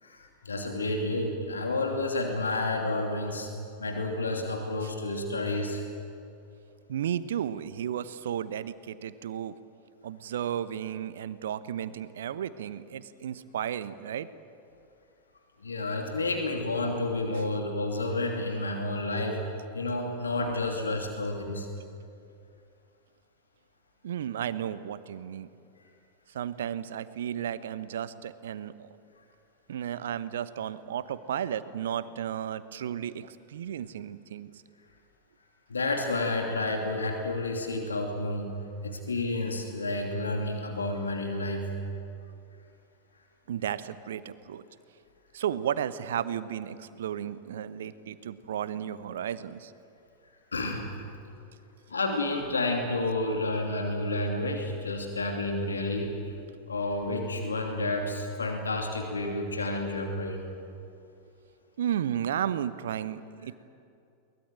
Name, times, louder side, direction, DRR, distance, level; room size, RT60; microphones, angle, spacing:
voice 1, 0.0-3.5 3.8-5.8 15.6-19.4 19.7-21.7 35.7-38.5 38.8-41.7 50.5-51.1 51.9-56.3 56.7-60.5, left 2 dB, 75° left, 2 dB, 2.9 m, -30 dB
voice 2, 6.9-9.5 10.0-14.3 24.0-25.5 26.3-29.0 29.7-34.6 38.5-38.6 43.5-44.6 45.3-49.7 61.8-63.6, right 9 dB, 60° right, 15 dB, 1.0 m, -33 dB
23.0 x 20.0 x 9.2 m, 2.5 s
figure-of-eight pair, 90°, 0 cm